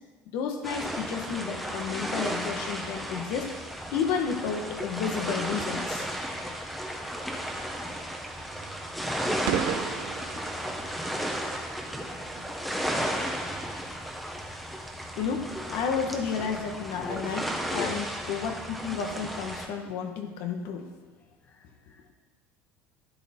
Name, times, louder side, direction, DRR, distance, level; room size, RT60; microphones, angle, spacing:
voice 1, 0.3-3.5 3.9-6.1 15.2-17.4 17.7-20.9, left 6 dB, 70° left, 4 dB, 1.3 m, -31 dB
sound 1, 0.6-19.7, equal, ahead, 1.1 m, -34 dB
sound 2, 6.9-14.1, right 9 dB, 70° right, 0.8 m, -39 dB
voice 2, 17.0-17.4 17.7-18.1 21.3-22.1, left 3 dB, 30° left, 4 dB, 1.1 m, -40 dB
12.0 x 8.7 x 4.4 m, 1.3 s
cardioid pair, 125°, 6 cm